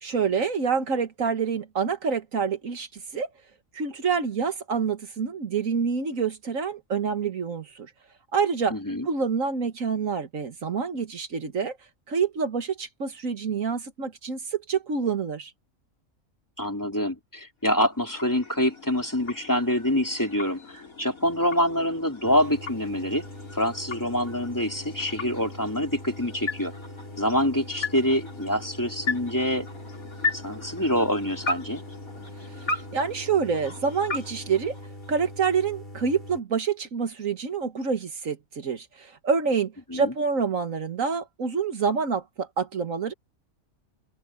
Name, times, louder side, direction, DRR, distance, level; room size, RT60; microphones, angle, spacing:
voice 1, 0.0-3.3 3.7-7.9 8.3-8.8 9.1-11.8 12.1-15.5 32.9-34.8 35.1-43.1, right 5 dB, 70° right, 1.9 m, -27 dB
voice 2, 8.7-9.1 16.6-23.2 23.5-26.7 27.2-29.7 30.3-31.8 39.9-40.1, equal, 15° left, 3.4 m, -26 dB
sound 1, 17.6-35.4, left 3 dB, 90° left, 4.2 m, -37 dB
sound 2, 22.2-36.4, left 1 dB, 40° left, 4.6 m, -42 dB
open air
omnidirectional pair, 1.4 m